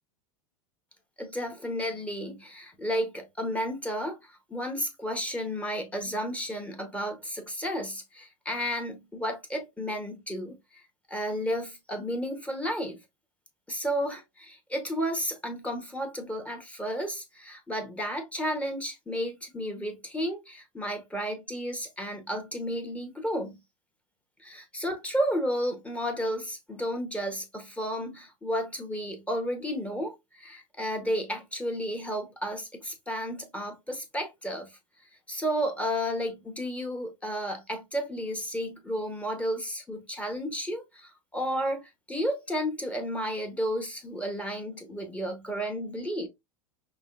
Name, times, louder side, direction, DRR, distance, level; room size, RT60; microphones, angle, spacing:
voice 1, 1.2-10.8 11.1-13.0 13.7-23.6 24.4-34.7 35.3-46.3, equal, 5° left, 1.1 m, -32 dB
5.3 x 2.3 x 2.3 m
hypercardioid pair, 100°, 18 cm